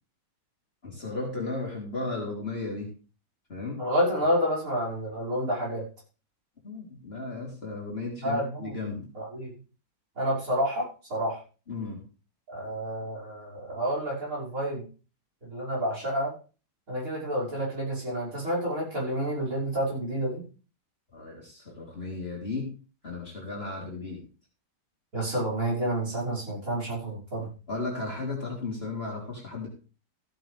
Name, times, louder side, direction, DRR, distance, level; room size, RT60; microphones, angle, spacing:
voice 1, 0.8-2.9 3.5-3.8 6.6-9.1 11.7-12.0 21.1-22.7 23.0-24.2 27.7-29.7, left 3 dB, 35° left, -2 dB, 3.8 m, -35 dB
voice 2, 3.8-5.8 8.2-8.7 9.1-9.5 10.2-11.4 12.5-14.8 15.4-16.3 16.9-20.4 25.1-27.5, equal, 50° right, -4 dB, 6.3 m, -29 dB
15.0 x 9.3 x 3.5 m, 0.35 s
omnidirectional pair, 1.8 m